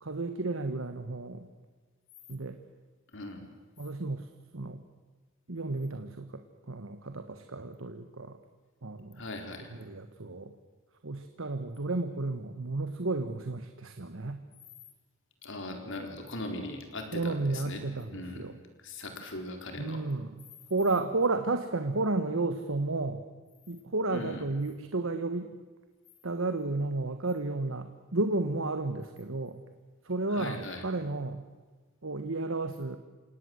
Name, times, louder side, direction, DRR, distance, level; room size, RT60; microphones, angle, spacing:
voice 1, 0.0-1.5 2.3-2.6 3.8-4.3 4.5-4.8 5.5-8.4 8.8-9.2 9.7-10.5 11.0-14.4 17.1-18.5 19.8-20.4 20.7-23.2 23.7-25.5 26.2-29.6 30.0-31.5 32.0-33.0, right 2 dB, 65° right, 8 dB, 1.3 m, -32 dB
voice 2, 3.1-3.5 9.2-9.7 15.4-17.8 18.1-18.4 18.8-20.0 24.1-24.4 30.3-30.9, left 1 dB, 60° left, 4 dB, 4.1 m, -39 dB
29.0 x 18.0 x 7.9 m, 1.4 s
head